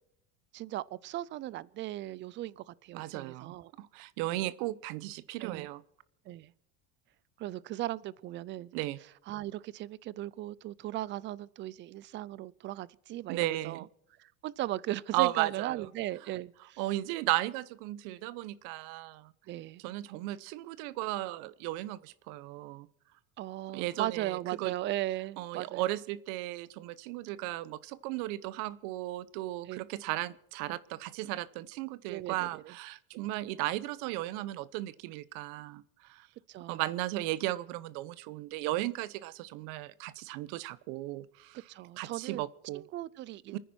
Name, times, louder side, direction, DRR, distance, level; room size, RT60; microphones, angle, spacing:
voice 1, 0.5-3.7 4.3-4.4 5.4-5.7 6.3-6.5 7.4-8.8 9.3-13.9 14.2-16.8 19.5-19.8 23.4-25.9 29.6-29.8 32.1-32.7 36.5-36.8 41.7-42.4 42.7-43.6, right 15 dB, 35° right, 0.5 m, -37 dB
voice 2, 2.9-5.8 8.7-9.0 13.3-13.9 15.1-15.9 16.8-19.3 19.8-22.9 23.7-24.7 25.4-36.3 36.7-41.6 42.0-42.8 43.5-43.6, right 16 dB, 70° right, 0.9 m, -35 dB
28.0 x 10.0 x 4.4 m
cardioid pair, 150°, 32 cm